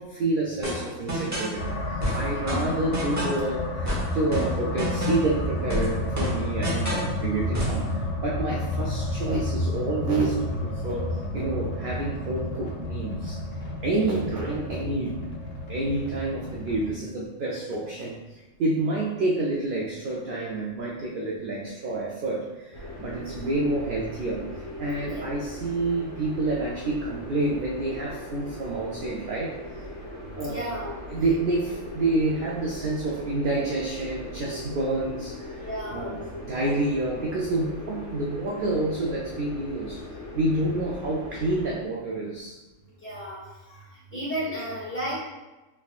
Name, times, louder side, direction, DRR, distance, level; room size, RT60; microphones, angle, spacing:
voice 1, 0.0-1.8 2.1-15.4 15.7-24.5 24.8-29.6 30.4-30.7 31.1-40.0 40.3-42.6, right 2 dB, 65° right, -3 dB, 0.5 m, -28 dB
sound 1, 0.6-1.6 2.0-3.5 3.8-5.4 5.7-7.1 7.5-7.8, equal, 15° right, 0.8 m, -29 dB
sound 2, 1.6-16.9, left 1 dB, 80° left, 1.0 m, -31 dB
sound 3, 22.7-41.7, left 1 dB, 55° left, 1.5 m, -39 dB
voice 2, 30.4-30.9 35.6-36.1 43.0-43.4 43.7-43.8 44.1-45.2, equal, 10° left, -9 dB, 1.3 m, -32 dB
3.4 x 3.4 x 2.3 m, 1.1 s
omnidirectional pair, 1.3 m